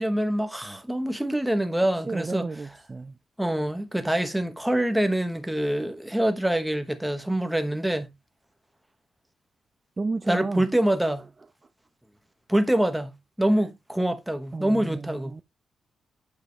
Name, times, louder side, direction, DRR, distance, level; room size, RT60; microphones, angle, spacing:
voice 1, 0.0-2.5 3.4-8.1 10.3-11.3 12.5-15.4, right 1 dB, 5° right, 1.0 m, -25 dB
voice 2, 2.1-3.2 10.0-10.7 13.5-13.7 14.5-15.4, right 3 dB, 25° right, 0.4 m, -32 dB
8.5 x 5.0 x 3.2 m
cardioid pair, 130°, 0 cm